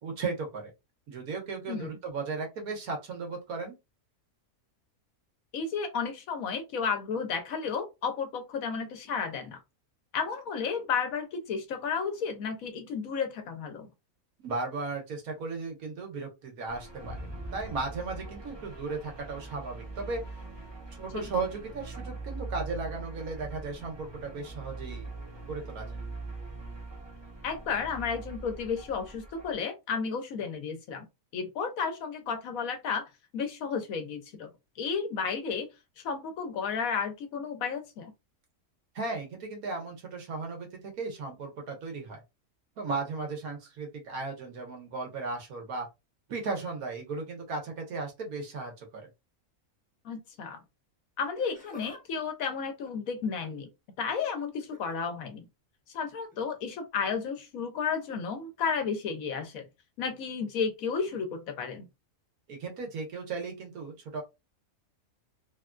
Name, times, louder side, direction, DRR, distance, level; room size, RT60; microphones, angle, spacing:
voice 1, 0.0-0.7 1.1-3.7 14.4-20.2 21.0-25.1 25.5-26.0 38.9-42.2 42.8-45.9 46.3-49.1 62.5-64.2, right 3 dB, 90° right, 1.5 m, -36 dB
voice 2, 5.5-9.6 10.1-13.9 21.1-21.3 27.4-31.1 31.3-34.5 34.8-35.7 36.0-38.1 50.0-50.6 51.2-53.7 54.0-55.5 55.9-59.7 60.0-61.9, left 6 dB, 75° left, 1.2 m, -32 dB
sound 1, 16.7-29.6, right 3 dB, 45° right, 0.3 m, -42 dB
Laughter, 51.2-52.0 52.3-53.7 54.6-55.0 56.3-56.5 57.4-57.5, left 2 dB, 10° left, 0.5 m, -51 dB
3.4 x 2.3 x 2.5 m
omnidirectional pair, 1.5 m